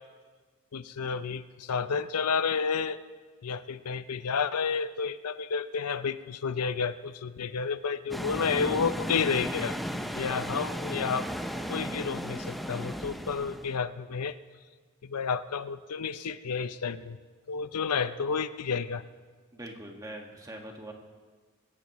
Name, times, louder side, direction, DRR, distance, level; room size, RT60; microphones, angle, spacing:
voice 1, 0.7-3.0 3.4-9.8 10.1-11.3 11.7-14.4 15.0-17.2 17.5-19.0, left 5 dB, 90° left, 13 dB, 0.6 m, -31 dB
sound 1, 8.1-13.8, equal, ahead, 0.6 m, -35 dB
voice 2, 19.5-20.9, right 1 dB, 15° right, 2 dB, 1.7 m, -42 dB
25.0 x 15.5 x 3.1 m, 1.4 s
head